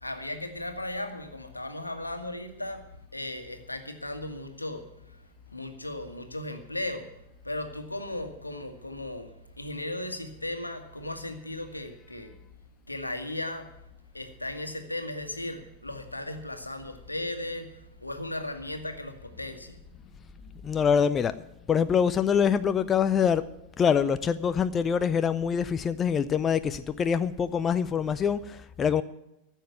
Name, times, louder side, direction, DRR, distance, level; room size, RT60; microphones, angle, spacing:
voice 1, 0.0-7.1 7.4-12.3 12.9-13.7 14.1-19.8, left 1 dB, 85° left, 7 dB, 1.6 m, -36 dB
voice 2, 20.6-21.3 21.7-23.4 23.8-29.0, left 7 dB, 25° left, 13 dB, 0.5 m, -25 dB
14.5 x 7.4 x 9.3 m, 0.87 s
figure-of-eight pair, 90°, 0 cm